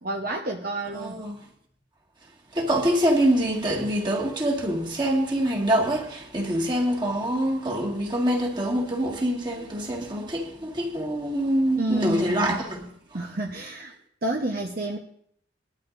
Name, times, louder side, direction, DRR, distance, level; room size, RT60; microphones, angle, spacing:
voice 1, 0.0-1.2 11.8-12.6 13.1-13.9 14.2-15.0, right 2 dB, 50° right, 0.9 m, -29 dB
voice 2, 0.9-1.4 2.5-12.8 13.1-13.2, right 1 dB, 25° right, 1.9 m, -25 dB
21.0 x 12.5 x 2.6 m
head